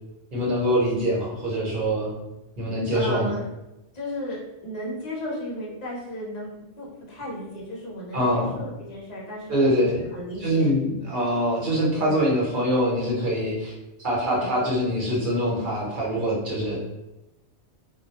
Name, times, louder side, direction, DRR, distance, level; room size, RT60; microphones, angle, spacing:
voice 1, 0.3-2.1 2.6-3.3 8.1-8.6 9.5-10.0 10.4-13.7 14.0-16.8, equal, 50° right, -4 dB, 0.9 m, -24 dB
voice 2, 2.9-3.5 3.9-6.5 6.8-10.7 11.9-12.2 14.3-14.5 16.6-16.8, equal, 40° left, -5 dB, 0.7 m, -34 dB
2.2 x 2.0 x 2.8 m, 0.95 s
omnidirectional pair, 1.2 m